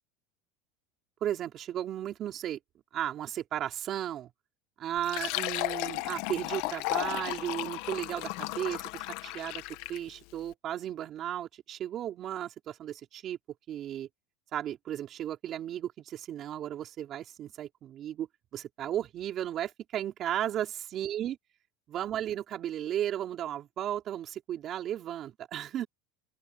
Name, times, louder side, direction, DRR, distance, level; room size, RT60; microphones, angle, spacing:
voice 1, 1.2-2.6 2.9-4.3 4.8-9.6 9.9-13.4 13.7-14.1 14.5-18.3 18.5-21.4 21.9-25.9, right 11 dB, 35° right, 4.2 m, -35 dB
Fill (with liquid), 5.0-10.1, left 20 dB, 60° left, 1.2 m, -34 dB
open air
supercardioid pair, 155°, 0 cm